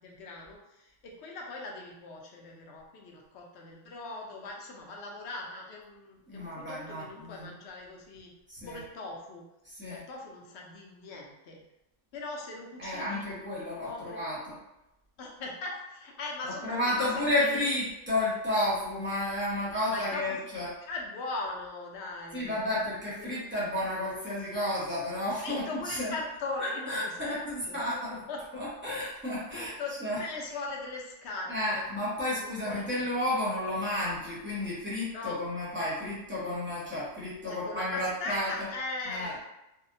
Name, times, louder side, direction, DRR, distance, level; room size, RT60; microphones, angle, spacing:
voice 1, 0.0-8.3 8.7-9.4 9.9-11.6 12.1-13.3 13.5-14.2 15.2-16.7 17.0-17.1 17.4-17.9 19.9-20.4 20.9-22.6 23.2-23.4 25.3-27.3 27.7-27.8 28.1-28.4 29.5-31.8 32.3-33.0 35.1-35.4 37.5-39.4, left 3 dB, 65° left, -1 dB, 0.8 m, -40 dB
voice 2, 6.3-7.5 8.5-8.8 9.6-10.0 12.8-14.5 16.6-20.7 22.3-26.1 26.6-28.1 28.5-29.7 30.0-30.2 31.5-38.5 39.1-39.4, left 1 dB, 10° right, -9 dB, 0.8 m, -32 dB
2.7 x 2.1 x 2.5 m, 0.90 s
omnidirectional pair, 1.3 m